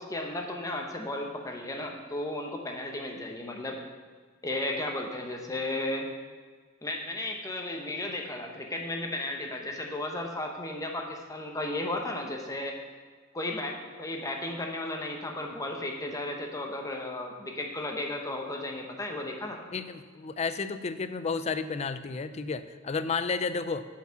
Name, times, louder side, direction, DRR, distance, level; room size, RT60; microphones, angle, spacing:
voice 1, 0.0-3.8 4.4-6.1 6.8-12.7 13.3-19.6, left 1 dB, 15° left, 2 dB, 0.9 m, -34 dB
voice 2, 19.7-23.9, left 4 dB, 30° left, 12 dB, 0.4 m, -32 dB
8.0 x 4.8 x 6.8 m, 1.5 s
head